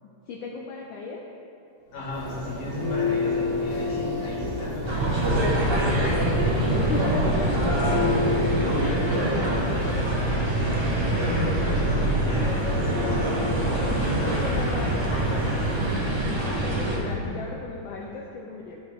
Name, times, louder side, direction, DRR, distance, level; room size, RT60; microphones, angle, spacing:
voice 1, 0.0-1.2 5.6-9.9 14.0-16.0 16.3-18.8, left 3 dB, 75° left, -1 dB, 1.3 m, -36 dB
voice 2, 1.9-5.0 8.7-9.5 10.5-14.6 16.9-17.3, left 2 dB, 50° left, -7 dB, 1.9 m, -35 dB
Church bell, 1.9-16.2, left 2 dB, 55° right, 2.0 m, -31 dB
sound 1, 4.8-17.0, right 1 dB, 25° right, 0.5 m, -25 dB
10.5 x 5.4 x 3.4 m, 2.9 s
omnidirectional pair, 2.2 m